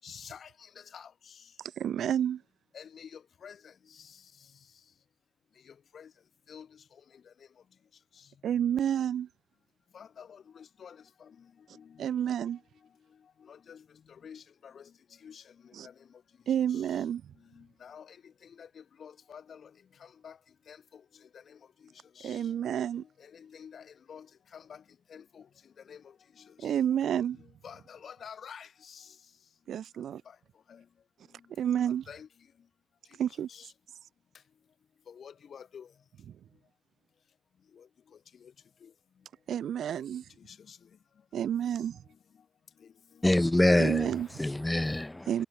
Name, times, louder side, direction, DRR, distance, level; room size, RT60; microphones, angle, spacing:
voice 1, 0.0-1.4 2.7-4.2 5.7-6.1 6.5-6.7 9.9-11.5 11.7-12.1 13.4-13.8 14.1-14.9 15.2-15.9 16.7-17.1 17.5-18.2 18.4-19.7 20.0-20.4 20.7-21.0 21.3-21.6 22.2-22.5 23.0-24.3 24.5-24.8 25.1-25.5 25.9-27.0 27.3-29.1 30.7-30.8 32.1-32.3 33.5-33.7 35.1-35.9 37.8-37.9 38.4-38.5 38.8-38.9 40.5-40.8 43.2-43.3, left 7 dB, 50° left, 7.2 m, -49 dB
voice 2, 1.8-2.4 8.4-9.3 12.0-12.6 15.8-15.9 16.5-17.3 22.2-23.0 26.6-27.4 29.7-30.2 31.5-32.0 33.2-33.5 39.5-40.3 41.3-42.0 43.8-44.3 45.3-45.5, right 9 dB, 75° right, 1.2 m, -30 dB
voice 3, 43.2-45.5, left 1 dB, 10° left, 1.1 m, -26 dB
wide cardioid pair, 180°, 0 cm